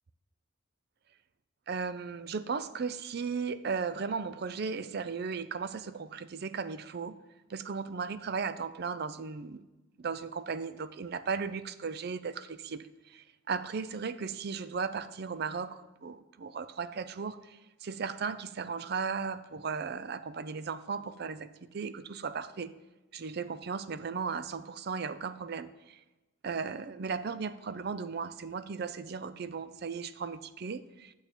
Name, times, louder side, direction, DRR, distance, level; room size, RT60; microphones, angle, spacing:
voice 1, 1.7-7.2 7.5-9.6 10.0-22.7 23.1-26.0 26.4-31.1, right 5 dB, 50° right, 14 dB, 0.5 m, -36 dB
11.0 x 7.1 x 4.4 m, 1.1 s
head